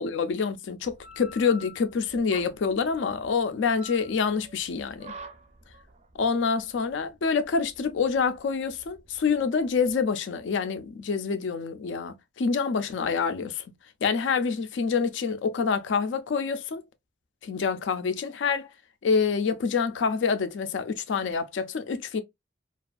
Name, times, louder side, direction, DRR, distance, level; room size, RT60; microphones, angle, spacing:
voice 1, 0.0-5.1 6.2-13.6 14.0-16.8 17.4-18.7 19.0-22.2, left 5 dB, 80° left, 0.4 m, -27 dB
sound 1, 0.8-10.0, equal, 35° right, 0.4 m, -48 dB
2.5 x 2.3 x 2.3 m
head